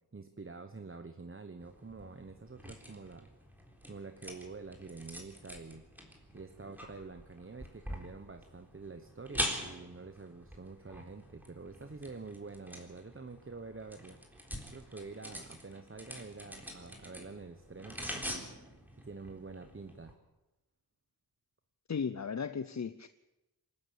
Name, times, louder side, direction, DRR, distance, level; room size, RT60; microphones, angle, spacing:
voice 1, 0.1-3.3 3.9-5.8 6.3-20.1, right 4 dB, 30° right, 1.2 m, -47 dB
sound 1, 1.6-20.1, equal, 5° right, 3.8 m, -45 dB
voice 2, 21.9-23.1, left 6 dB, 45° left, 0.7 m, -36 dB
27.0 x 12.5 x 8.5 m
wide cardioid pair, 105°, 40 cm